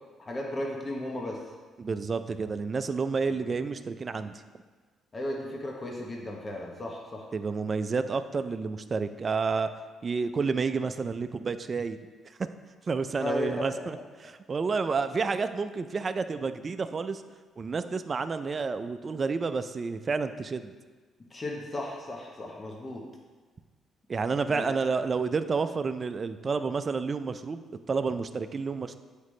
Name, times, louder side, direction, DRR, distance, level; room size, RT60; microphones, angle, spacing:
voice 1, 0.2-1.4 5.1-7.2 13.2-13.5 13.8-13.9 21.3-23.0 24.5-24.7, left 1 dB, 30° left, -1 dB, 1.0 m, -35 dB
voice 2, 1.8-4.4 7.3-9.7 10.0-12.0 12.9-14.0 14.2-17.2 17.6-20.7 24.1-29.0, right 4 dB, 40° right, 10 dB, 0.4 m, -30 dB
8.1 x 4.9 x 3.2 m, 1.4 s
cardioid pair, 90°, 0 cm